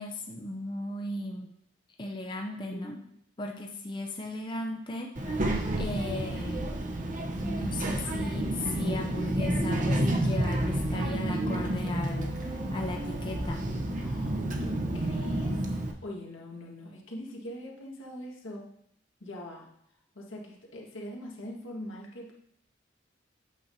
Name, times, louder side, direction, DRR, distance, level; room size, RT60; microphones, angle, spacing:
voice 1, 0.0-1.5 2.0-5.4 5.8-6.6 7.4-13.6, left 1 dB, 25° left, 2 dB, 0.5 m, -36 dB
Child speech kid speaking, 5.2-15.9, right 1 dB, 40° right, 0.7 m, -30 dB
voice 2, 13.9-15.7 16.0-18.7 19.2-19.7 20.2-22.3, left 1 dB, 85° left, -2 dB, 1.7 m, -42 dB
8.3 x 7.3 x 2.7 m, 0.72 s
head